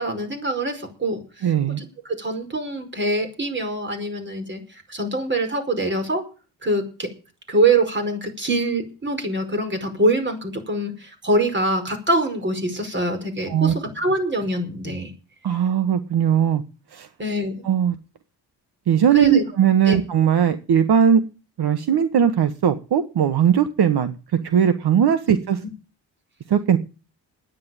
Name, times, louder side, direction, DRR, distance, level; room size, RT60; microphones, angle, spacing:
voice 1, 0.0-4.6 4.9-6.2 6.6-7.1 7.5-15.1 17.2-17.6 19.1-19.4 19.9-20.0 25.3-25.4, right 2 dB, 25° right, 6 dB, 5.2 m, -24 dB
voice 2, 1.4-1.8 13.5-13.7 15.4-16.6 16.9-17.1 17.6-18.0 18.9-21.2 21.6-24.1 24.4-25.6 26.5-26.8, right 8 dB, 65° right, 10 dB, 1.3 m, -19 dB
10.5 x 9.7 x 8.9 m, 0.34 s
cardioid pair, 105°, 42 cm